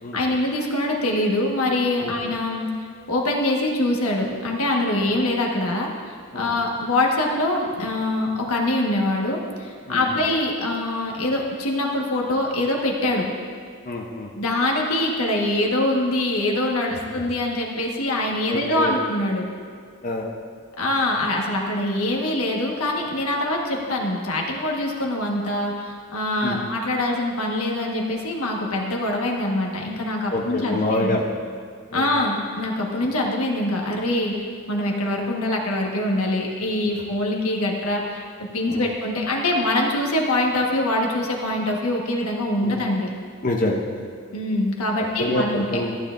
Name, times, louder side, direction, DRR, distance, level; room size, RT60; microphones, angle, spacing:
voice 1, 0.1-2.7 3.1-5.9 6.3-13.2 14.4-19.4 20.8-31.2 31.9-34.3 34.7-38.2 38.5-43.1 44.3-45.8, left 1 dB, 85° left, 0 dB, 1.4 m, -24 dB
voice 2, 9.9-10.2 13.8-14.3 18.5-19.0 20.0-20.3 26.4-26.6 30.3-31.2 31.9-32.1 38.7-38.9 42.6-42.8 43.4-44.1 45.2-46.0, left 1 dB, 40° left, -1 dB, 0.7 m, -26 dB
14.5 x 9.5 x 2.5 m, 2.1 s
head